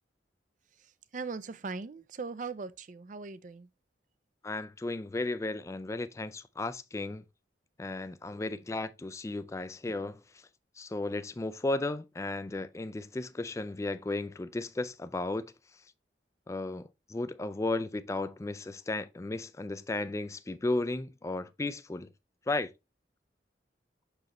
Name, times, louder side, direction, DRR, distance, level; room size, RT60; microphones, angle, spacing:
voice 1, 1.1-3.7, right 4 dB, 45° right, 0.4 m, -39 dB
voice 2, 4.4-7.2 7.8-10.4 10.8-15.5 16.5-22.1 22.5-22.7, left 2 dB, 15° left, 0.3 m, -34 dB
6.3 x 4.9 x 3.0 m
head